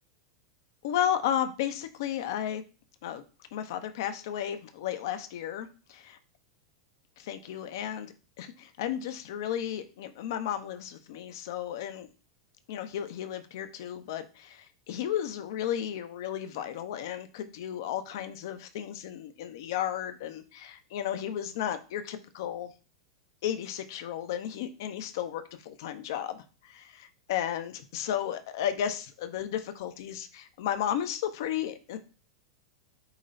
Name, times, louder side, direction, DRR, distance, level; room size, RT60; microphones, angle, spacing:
voice 1, 0.8-2.6 3.0-3.2 3.5-6.2 7.2-12.1 12.7-22.7 23.4-32.0, left 10 dB, 55° left, 9 dB, 0.8 m, -33 dB
8.0 x 3.1 x 4.0 m, 0.36 s
figure-of-eight pair, 90°, 2 cm